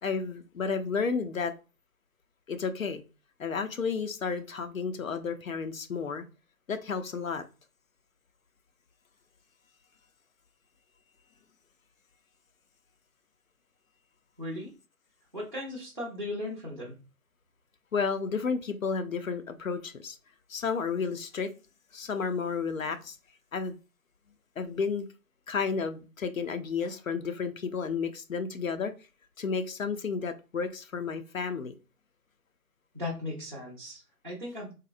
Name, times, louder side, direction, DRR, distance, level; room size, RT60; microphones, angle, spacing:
voice 1, 0.0-1.5 2.5-3.0 3.4-6.2 6.7-7.4 17.9-20.2 20.5-21.5 21.9-23.2 23.5-23.7 24.6-25.1 25.5-28.9 29.4-31.7, left 5 dB, 60° left, 9 dB, 0.5 m, -32 dB
voice 2, 14.4-14.7 15.3-17.0 32.9-34.7, left 1 dB, 35° right, -5 dB, 0.6 m, -37 dB
3.8 x 2.1 x 2.5 m, 0.32 s
figure-of-eight pair, 170°, 47 cm